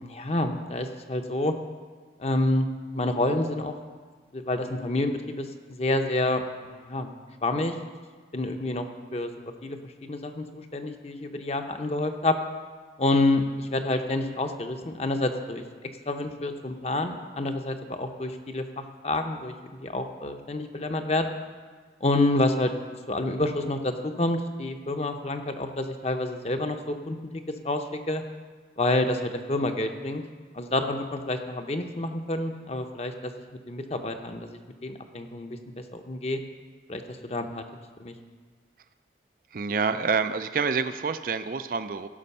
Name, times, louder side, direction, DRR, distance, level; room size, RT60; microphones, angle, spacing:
voice 1, 0.0-1.5 2.2-3.7 4.3-7.1 7.4-7.7 8.3-8.9 9.1-9.3 9.6-12.4 13.0-15.6 16.1-21.3 22.0-22.7 23.1-27.2 27.6-28.2 28.8-30.2 30.5-33.3 33.7-35.6 35.9-36.4 36.9-37.6 38.0-38.1, left 2 dB, 35° left, 6 dB, 0.7 m, -28 dB
voice 2, 39.5-42.1, right 5 dB, 50° right, 11 dB, 0.4 m, -27 dB
16.0 x 6.2 x 5.5 m, 1.5 s
head